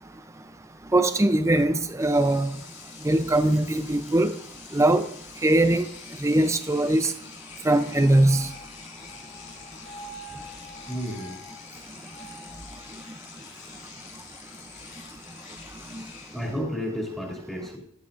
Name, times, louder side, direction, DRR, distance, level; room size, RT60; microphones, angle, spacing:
voice 1, 0.9-2.5 3.0-4.4 4.7-5.1 5.4-5.9 6.2-7.1 7.6-8.5 15.9-16.0, right 1 dB, 15° right, 9 dB, 0.5 m, -21 dB
Engine / Domestic sounds home sounds, 1.6-1.7 2.0-16.6, left 5 dB, 55° left, 2.3 m, -46 dB
sound 1, 7.9-13.3, equal, 25° left, 3.3 m, -46 dB
voice 2, 10.9-11.4 16.3-17.8, equal, ahead, -3 dB, 2.5 m, -31 dB
13.5 x 11.5 x 2.6 m, 0.67 s
head